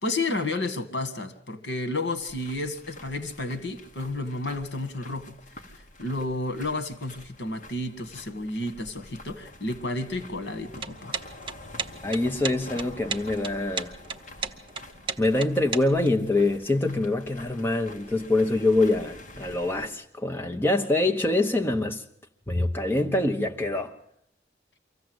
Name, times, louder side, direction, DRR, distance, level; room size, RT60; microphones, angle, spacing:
voice 1, 0.0-5.4 6.0-11.2, left 2 dB, 90° left, 1.9 m, -31 dB
sound 1, 2.2-19.9, left 1 dB, 45° left, 1.9 m, -47 dB
sound 2, 10.7-16.1, right 5 dB, 30° right, 0.8 m, -33 dB
voice 2, 12.0-14.0 15.2-22.0 22.5-24.0, left 2 dB, 10° left, 1.1 m, -25 dB
24.5 x 15.5 x 7.9 m
head